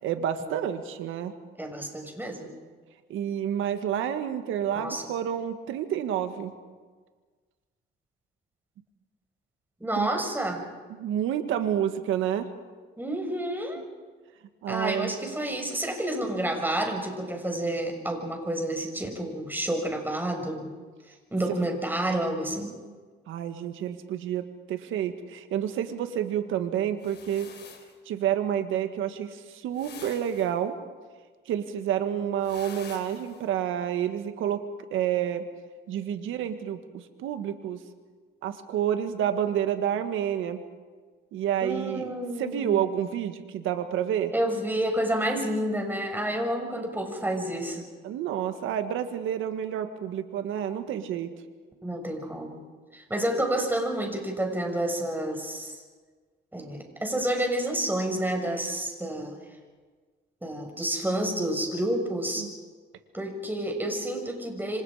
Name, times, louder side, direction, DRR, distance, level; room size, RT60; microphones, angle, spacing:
voice 1, 0.0-1.3 3.1-6.5 10.0-10.1 10.9-12.5 14.6-15.1 23.3-27.5 28.1-30.7 31.5-34.6 34.9-35.4 35.9-37.8 38.4-40.6 41.3-42.1 42.4-44.3 48.0-51.3 62.4-62.5, right 10 dB, 90° right, 8 dB, 1.7 m, -29 dB
voice 2, 1.6-2.5 4.7-5.0 9.8-10.7 13.0-13.8 14.7-20.7 21.3-22.7 41.6-42.8 44.3-47.9 51.8-52.6 52.9-55.8 56.5-59.4 60.4-62.5 63.1-64.8, right 1 dB, 10° right, 3 dB, 5.9 m, -29 dB
sound 1, 27.0-28.0 29.7-30.5 32.4-33.5, left 6 dB, 60° left, 3.7 m, -46 dB
27.5 x 25.5 x 5.0 m, 1.5 s
cardioid pair, 90°, 20 cm